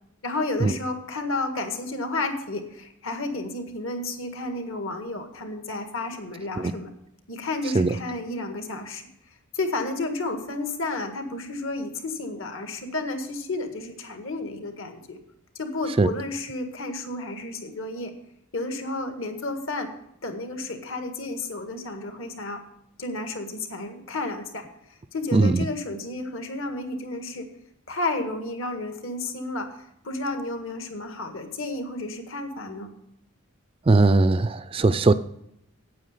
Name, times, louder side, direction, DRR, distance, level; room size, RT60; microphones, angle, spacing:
voice 1, 0.2-6.9 7.3-9.0 9.5-15.2 15.6-18.1 18.5-19.9 20.2-22.6 23.0-24.7 25.1-27.5 27.9-29.8 30.0-32.9, left 2 dB, 65° left, 5 dB, 1.8 m, -31 dB
voice 2, 25.3-25.7 33.9-35.1, right 3 dB, 25° right, 13 dB, 0.3 m, -19 dB
9.1 x 8.8 x 6.6 m, 0.79 s
head